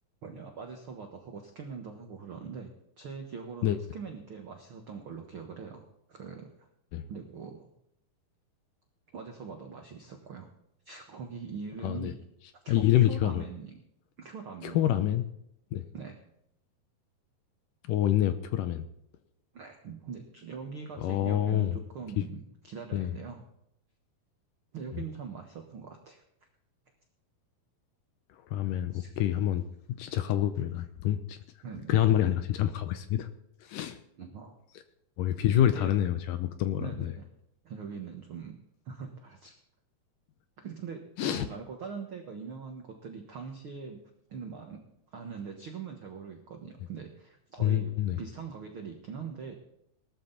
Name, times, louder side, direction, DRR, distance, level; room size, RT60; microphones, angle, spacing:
voice 1, 0.2-2.7 3.0-6.5 7.0-7.7 9.1-10.5 10.8-12.2 12.5-13.8 14.2-14.9 15.9-16.2 19.5-23.4 24.7-26.2 28.9-29.1 31.6-31.9 34.2-34.5 35.5-36.0 36.8-37.3 37.6-38.6 38.8-39.5 40.6-44.0 44.3-44.8 45.1-47.9 48.2-49.5, right 5 dB, 65° right, 3 dB, 1.3 m, -42 dB
voice 2, 12.7-13.4 14.6-15.2 15.7-15.9 17.9-18.8 21.0-21.8 22.2-22.3 22.9-23.2 28.5-29.6 30.0-31.4 31.9-33.3 33.6-34.0 35.2-37.1 41.2-41.5 47.6-48.2, left 12 dB, 80° left, 10 dB, 2.0 m, -27 dB
18.5 x 13.0 x 4.1 m, 0.76 s
omnidirectional pair, 4.6 m